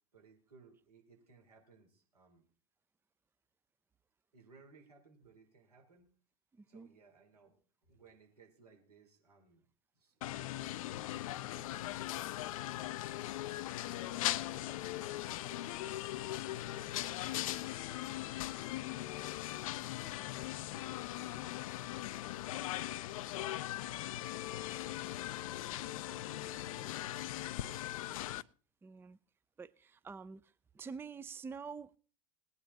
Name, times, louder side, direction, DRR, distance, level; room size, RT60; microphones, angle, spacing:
voice 1, 0.1-2.4 4.3-6.1 6.7-7.6 7.9-9.6 10.0-10.8 11.2-12.8 13.8-14.7 15.1-18.3 18.8-23.1 25.8-28.2, right 4 dB, 85° right, 4.2 m, -63 dB
voice 2, 6.6-6.9 20.2-20.3 28.8-29.2 29.6-30.4 30.7-32.0, right 5 dB, 10° right, 0.5 m, -47 dB
sound 1, 10.2-28.4, left 15 dB, 60° left, 0.6 m, -39 dB
19.0 x 9.7 x 4.1 m
figure-of-eight pair, 80°, 19 cm